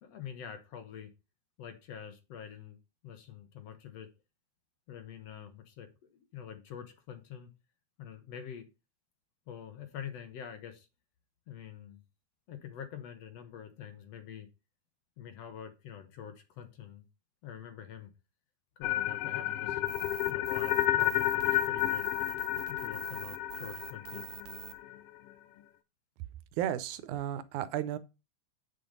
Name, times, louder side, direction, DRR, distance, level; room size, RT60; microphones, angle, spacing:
voice 1, 0.0-1.1 1.6-2.8 3.0-4.1 4.9-7.5 8.0-8.7 9.5-10.9 11.5-12.0 12.5-14.5 15.2-17.1 17.4-18.1 18.8-20.0 20.3-22.1 22.7-24.3, left 8 dB, 60° left, 2.1 m, -46 dB
sound 1, 18.8-24.9, left 13 dB, 90° left, 1.3 m, -31 dB
sound 2, 19.9-24.7, right 10 dB, 60° right, 1.6 m, -46 dB
voice 2, 26.6-28.0, right 11 dB, 80° right, 2.1 m, -33 dB
8.4 x 5.9 x 5.2 m
omnidirectional pair, 3.5 m